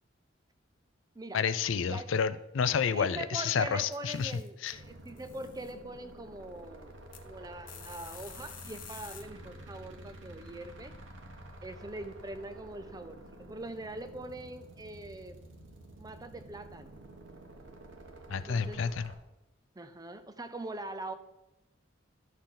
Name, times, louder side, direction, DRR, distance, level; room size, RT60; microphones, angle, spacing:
voice 1, 1.3-4.3 4.6-4.7 18.3-19.1, left 6 dB, 80° left, 13 dB, 0.5 m, -30 dB
voice 2, 2.9-6.9 7.2-11.0 11.6-15.4 16.0-16.9 18.5-18.9 19.8-21.1, right 2 dB, 20° right, 10 dB, 0.6 m, -42 dB
sound 1, 3.9-4.7 5.1-5.7 7.1-7.2 7.7-9.2, left 9 dB, 45° left, 0.9 m, -49 dB
sound 2, 4.7-19.1, right 1 dB, 80° right, 1.2 m, -50 dB
12.0 x 6.5 x 3.8 m, 0.94 s
head